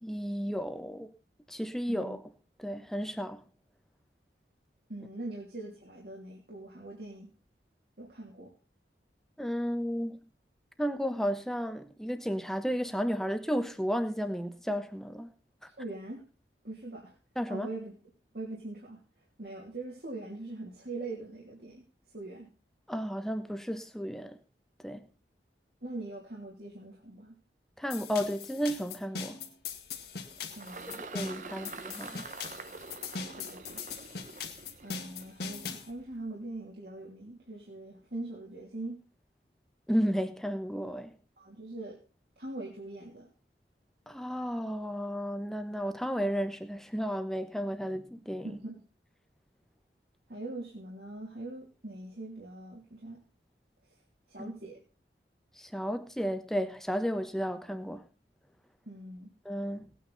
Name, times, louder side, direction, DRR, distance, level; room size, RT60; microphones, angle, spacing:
voice 1, 0.0-1.1 1.5-2.2 2.6-3.4 9.4-10.2 10.8-15.3 17.4-17.7 22.9-24.4 24.8-25.1 27.8-29.4 30.9-32.2 39.9-41.1 44.1-48.5 54.4-54.5 55.6-58.1 59.4-59.9, equal, ahead, 8 dB, 1.1 m, -33 dB
voice 2, 4.9-7.3 8.0-8.5 15.8-16.2 16.6-17.2 17.5-17.9 18.3-19.0 19.4-21.8 22.1-22.5 25.8-27.3 30.5-31.0 31.6-31.7 33.2-33.9 34.8-39.0 41.4-42.0 42.4-43.3 48.4-48.8 50.3-53.2 54.3-54.8 58.9-59.3, right 2 dB, 65° right, -2 dB, 3.0 m, -42 dB
sound 1, 27.9-35.9, left 5 dB, 65° left, 1.9 m, -40 dB
Engine, 29.7-36.3, right 4 dB, 45° right, 0.8 m, -47 dB
18.5 x 9.2 x 4.1 m, 0.35 s
head